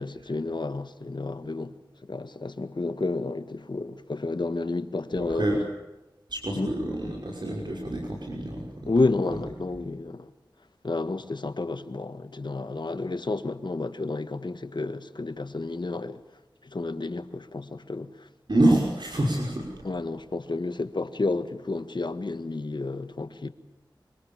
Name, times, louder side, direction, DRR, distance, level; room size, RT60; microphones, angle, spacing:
voice 1, 0.0-1.7 2.1-5.5 6.5-6.7 8.9-10.3 10.8-16.2 16.6-18.1 19.8-23.5, left 3 dB, 65° left, 1.7 m, -30 dB
voice 2, 5.2-5.6 6.3-8.9 9.3-9.4 18.5-19.7, right 1 dB, 65° right, 5.6 m, -26 dB
26.5 x 25.0 x 7.3 m
wide cardioid pair, 55°, 8 cm